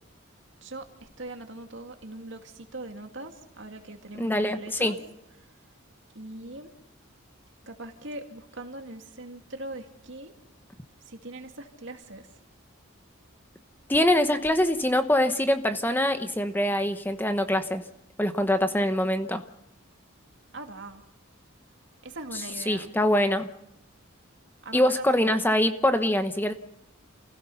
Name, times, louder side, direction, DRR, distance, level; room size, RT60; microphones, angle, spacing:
voice 1, 0.6-5.0 5.3-5.5 6.1-6.7 7.7-10.3 11.1-12.3 14.4-14.6 20.5-21.0 22.0-22.9 24.6-25.5, right 2 dB, 60° right, 2.5 m, -41 dB
voice 2, 4.2-4.9 13.9-17.8 18.2-19.4 22.7-23.5 24.7-26.5, left 1 dB, 10° left, 0.9 m, -24 dB
29.0 x 16.5 x 5.7 m
head